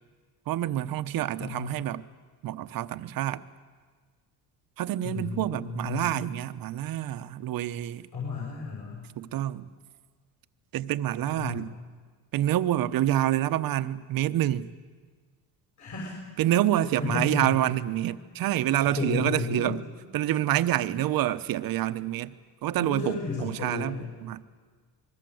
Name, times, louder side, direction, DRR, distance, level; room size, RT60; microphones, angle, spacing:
voice 1, 0.5-2.0 2.4-3.4 4.8-8.1 9.2-9.7 10.7-11.7 12.3-14.7 16.4-19.8 20.1-22.3 22.6-23.9 24.2-24.4, right 13 dB, 60° right, 12 dB, 1.0 m, -27 dB
voice 2, 1.4-1.7 5.0-6.1 8.1-9.1 11.3-11.8 15.8-16.5 17.0-17.6 18.7-19.7 22.8-24.1, left 4 dB, 45° left, -3 dB, 6.5 m, -33 dB
27.0 x 21.5 x 7.8 m, 1.5 s
cardioid pair, 130°, 39 cm